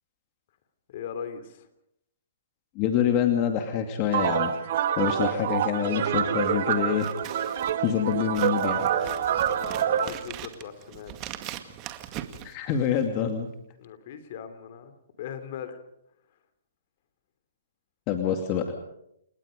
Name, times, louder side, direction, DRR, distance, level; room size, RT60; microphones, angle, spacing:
voice 1, 0.9-1.7 4.9-5.4 8.6-11.1 13.8-15.8, left 8 dB, 50° left, 10 dB, 3.1 m, -40 dB
voice 2, 2.8-4.5 5.0-7.1 7.5-8.9 12.4-13.5 18.1-18.7, left 8 dB, 35° left, 5 dB, 2.4 m, -26 dB
sound 1, 4.1-10.1, right 9 dB, 55° right, 1.9 m, -26 dB
Scissors, 6.9-13.2, right 12 dB, 30° right, 2.0 m, -41 dB
29.0 x 19.5 x 5.3 m, 0.79 s
hypercardioid pair, 135°, 0 cm